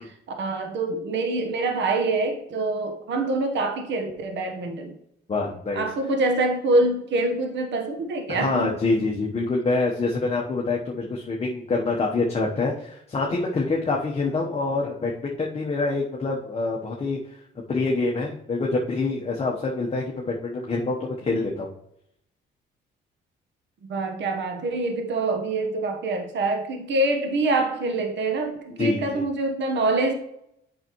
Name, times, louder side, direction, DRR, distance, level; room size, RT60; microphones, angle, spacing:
voice 1, 0.0-5.0 5.7-8.8 23.9-30.1, right 2 dB, 65° right, 5 dB, 1.1 m, -25 dB
voice 2, 5.3-5.8 8.3-17.2 17.7-21.7 28.8-29.2, left 3 dB, 30° left, -2 dB, 1.0 m, -26 dB
8.1 x 5.5 x 3.1 m, 0.77 s
cardioid pair, 90°, 20 cm